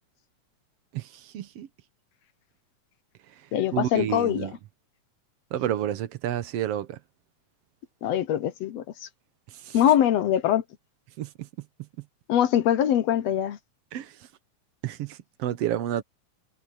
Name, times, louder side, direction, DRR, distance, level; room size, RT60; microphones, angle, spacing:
voice 1, 0.9-1.7 3.7-4.5 5.5-7.0 9.5-9.8 11.2-11.5 13.9-14.2 14.8-16.0, right 11 dB, 65° right, 1.8 m, -30 dB
voice 2, 3.5-4.5 8.0-8.8 9.7-10.6 12.3-13.6, left 11 dB, 70° left, 1.8 m, -23 dB
omnidirectional pair, 3.5 m